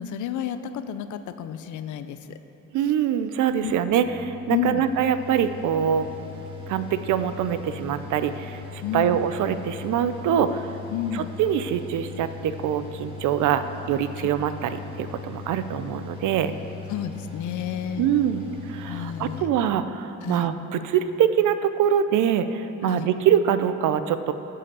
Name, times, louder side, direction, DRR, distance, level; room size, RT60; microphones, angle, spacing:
voice 1, 0.0-2.4 3.6-3.7 4.5-4.8 8.8-9.3 10.9-11.3 14.2-14.3 16.9-18.1 18.9-19.5 20.2-20.5 22.8-23.1, left 9 dB, 75° left, 11 dB, 0.6 m, -31 dB
voice 2, 2.7-6.1 6.7-10.7 11.1-16.5 18.0-24.3, right 9 dB, 80° right, 11 dB, 0.6 m, -24 dB
Mechanical fan, 4.0-19.4, left 6 dB, 15° right, 1.7 m, -39 dB
10.5 x 5.6 x 6.7 m, 3.0 s
cardioid pair, 90°, 30 cm